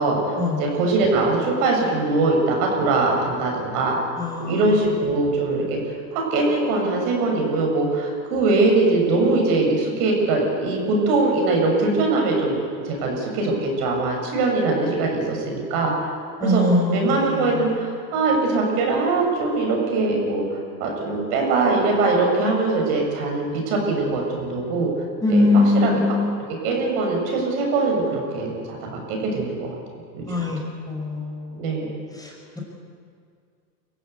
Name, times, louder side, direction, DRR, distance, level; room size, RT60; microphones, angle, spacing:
voice 1, 0.0-4.0 4.5-12.6 12.9-16.1 16.4-16.6 16.9-24.9 25.3-25.9 26.6-29.7 30.1-30.2 31.6-31.9, right 3 dB, 60° right, 0 dB, 6.9 m, -22 dB
voice 2, 4.2-4.6 16.4-17.6 25.2-26.4 30.3-30.6 30.9-31.7 32.2-32.3, left 2 dB, 5° left, -1 dB, 5.2 m, -21 dB
24.0 x 15.5 x 8.3 m, 2.2 s
hypercardioid pair, 100°, 49 cm